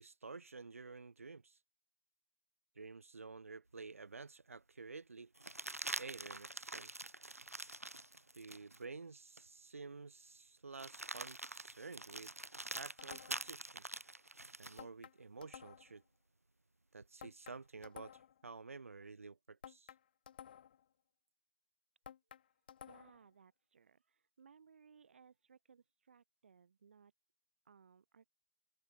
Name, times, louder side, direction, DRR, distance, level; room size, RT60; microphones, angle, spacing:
voice 1, 0.0-1.6 2.8-5.3 6.0-6.9 8.3-12.3 12.7-13.8 14.6-16.0 16.9-19.9, right 4 dB, 75° right, 1.0 m, -51 dB
sound 1, 3.8-3.9 5.4-8.8 9.4-9.5 10.7-14.8 17.0-17.9, right 2 dB, 90° right, 2.0 m, -46 dB
sound 2, 13.0-13.6 14.8-16.0 17.2-18.4 19.6-20.9 22.1-23.3, left 9 dB, 40° left, 0.8 m, -55 dB
voice 2, 22.8-27.1 27.6-28.2, right 6 dB, 55° right, 4.7 m, -64 dB
figure-of-eight pair, 145°, 8 cm